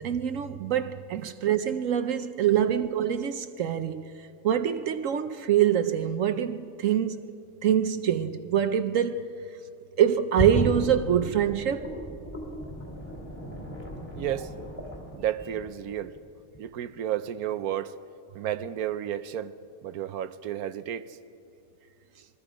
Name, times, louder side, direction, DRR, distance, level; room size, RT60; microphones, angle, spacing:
voice 1, 0.0-4.1 4.4-7.3 7.6-9.4 10.0-11.9, right 9 dB, 65° right, 1.0 m, -25 dB
sound 1, 10.3-16.2 16.5-16.6, equal, 20° left, 3.4 m, -34 dB
voice 2, 14.2-14.5 15.1-16.1 16.6-18.0 18.3-19.5 19.8-21.2, right 11 dB, 85° right, 1.2 m, -32 dB
27.5 x 22.0 x 5.1 m
omnidirectional pair, 1.5 m